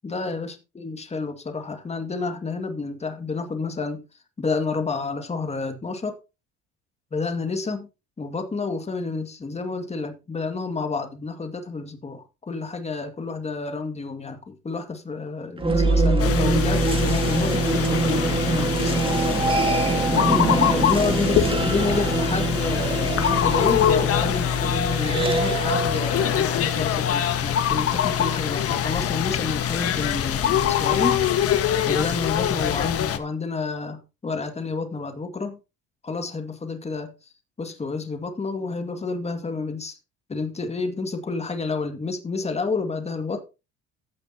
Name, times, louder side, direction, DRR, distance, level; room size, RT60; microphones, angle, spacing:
voice 1, 0.0-4.0 4.4-6.2 7.1-7.9 8.2-19.0 20.1-31.2 31.6-35.6 36.0-37.1 37.6-40.0 40.3-43.4, left 4 dB, 20° left, 2.1 m, -29 dB
sound 1, 15.6-27.7, right 3 dB, 20° right, 2.0 m, -24 dB
sound 2, 16.2-33.2, left 10 dB, 55° left, 1.5 m, -24 dB
15.0 x 8.1 x 2.9 m
cardioid pair, 100°, 29 cm